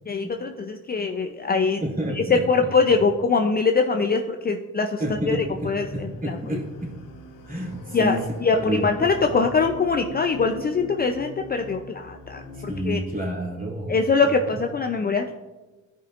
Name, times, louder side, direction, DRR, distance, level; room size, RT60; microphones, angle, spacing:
voice 1, 0.1-1.8 2.1-6.6 7.9-13.0 13.9-15.3, left 4 dB, 30° left, 4 dB, 0.5 m, -23 dB
voice 2, 1.8-2.4 5.0-6.9 7.5-8.2 8.5-9.4 12.5-14.0, equal, 25° right, -3 dB, 2.5 m, -30 dB
sound 1, 5.0-12.8, left 1 dB, 80° left, 1.2 m, -41 dB
13.0 x 5.2 x 2.5 m, 1.2 s
cardioid pair, 80°, 33 cm